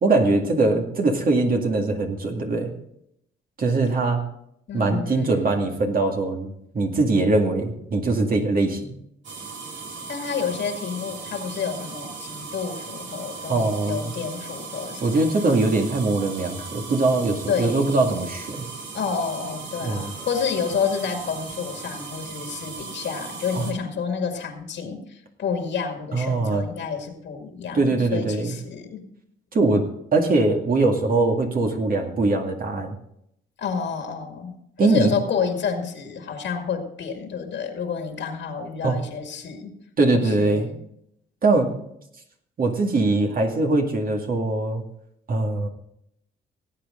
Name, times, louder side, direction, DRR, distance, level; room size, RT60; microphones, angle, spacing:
voice 1, 0.0-2.7 3.6-4.2 4.7-8.9 13.5-14.1 15.0-18.7 19.8-20.1 23.6-23.7 26.1-26.7 27.7-28.6 29.5-33.0 34.8-35.2 38.8-39.0 40.0-40.7 41.4-41.7 42.6-44.8 45.3-45.7, right 3 dB, 45° right, 2 dB, 2.2 m, -22 dB
voice 2, 4.7-5.6 10.1-15.2 17.5-17.9 18.9-29.0 33.6-39.7 40.1-40.8, left 6 dB, 65° left, 4 dB, 2.1 m, -29 dB
sound 1, 9.2-23.7, right 4 dB, 65° right, 3.1 m, -37 dB
18.0 x 8.6 x 3.8 m, 0.74 s
cardioid pair, 90°, 20 cm